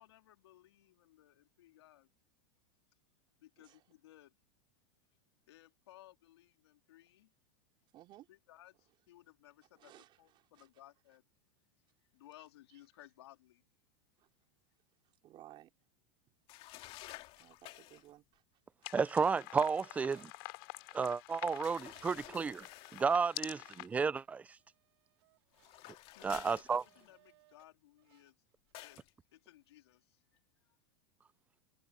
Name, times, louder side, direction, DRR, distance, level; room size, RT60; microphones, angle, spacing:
voice 1, 0.0-2.1 3.4-4.3 5.5-7.3 8.3-11.2 12.1-13.6 26.1-28.4 28.8-29.0 29.3-30.2 30.6-30.8, left 14 dB, 85° left, 3.6 m, -60 dB
voice 2, 7.9-8.3 9.8-10.2 10.5-10.7 14.2-14.3 15.2-15.7 17.4-18.4 21.5-21.7 22.9-23.0 23.8-23.9, right 14 dB, 35° right, 4.7 m, -58 dB
sound 1, 16.5-18.1 21.6-23.2 25.5-27.3 28.7-29.1, left 18 dB, 45° left, 2.1 m, -52 dB
sound 2, 18.8-23.9, left 25 dB, 60° left, 2.9 m, -48 dB
voice 3, 18.9-20.3 20.9-22.7 22.9-24.4 26.2-26.8, right 5 dB, 10° right, 0.3 m, -32 dB
sound 3, 19.1-20.3 20.8-20.9 21.3-24.3 24.6-27.7 28.0-28.3 28.7-28.8, right 18 dB, 75° right, 3.6 m, -68 dB
supercardioid pair, 140°, 13 cm